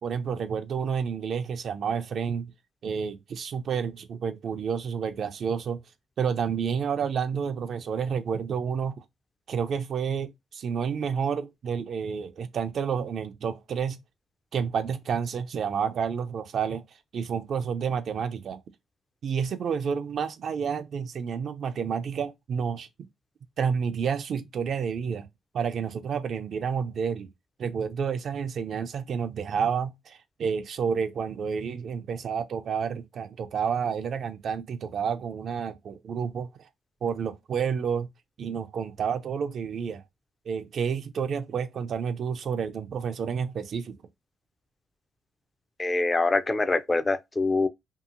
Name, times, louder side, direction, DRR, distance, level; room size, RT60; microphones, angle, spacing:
voice 1, 0.0-2.5 2.8-5.8 6.2-9.0 9.5-14.0 14.5-16.8 17.1-18.6 19.2-22.9 23.6-25.3 25.5-27.3 27.6-36.5 37.0-38.1 38.4-40.0 40.5-44.0, right 6 dB, 60° right, 0.3 m, -30 dB
voice 2, 45.8-47.7, left 3 dB, 25° left, 0.4 m, -24 dB
2.7 x 2.4 x 2.4 m
cardioid pair, 90°, 0 cm